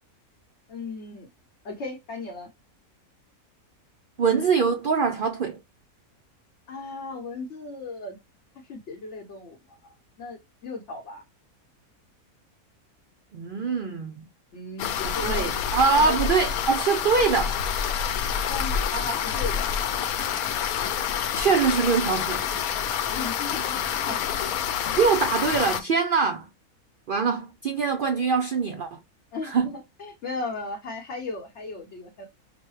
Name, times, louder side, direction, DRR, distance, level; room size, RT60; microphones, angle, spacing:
voice 1, 0.7-1.3 1.6-2.5 6.7-8.2 8.7-9.6 9.8-9.9 10.2-11.2 14.5-15.5 15.9-16.2 18.5-19.7 23.1-23.8 24.1-24.2 29.3-32.3, left 3 dB, 55° left, 1.1 m, -36 dB
voice 2, 4.2-5.6 13.3-14.2 15.0-17.6 21.3-22.4 25.0-26.5 27.1-29.0 29.4-29.7, right 5 dB, 70° right, 0.5 m, -23 dB
sound 1, 14.8-25.8, left 8 dB, 75° left, 1.1 m, -27 dB
6.0 x 2.2 x 3.1 m
omnidirectional pair, 1.6 m